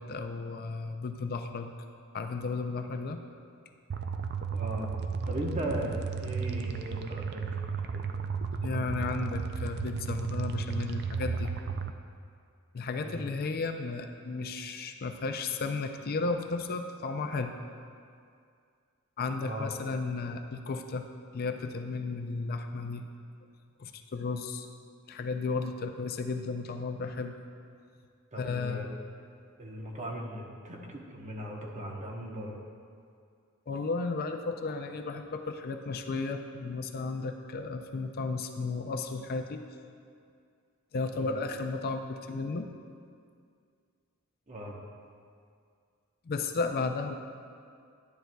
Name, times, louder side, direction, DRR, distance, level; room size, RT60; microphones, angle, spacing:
voice 1, 0.0-1.7 2.1-3.2 8.6-11.5 12.7-17.5 19.2-21.1 21.3-23.1 23.8-24.7 25.1-27.4 28.4-28.8 33.7-39.6 40.9-42.7 46.3-47.1, left 3 dB, 45° left, 6 dB, 0.4 m, -34 dB
sound 1, 3.9-11.9, right 5 dB, 50° right, 0.4 m, -34 dB
voice 2, 4.5-4.9 5.3-7.6 7.9-8.1 13.0-13.3 19.4-19.8 28.3-29.0 29.6-32.6 41.1-41.3 44.5-44.8, right 1 dB, 35° right, 0 dB, 1.0 m, -38 dB
10.5 x 10.0 x 2.3 m, 2.3 s
head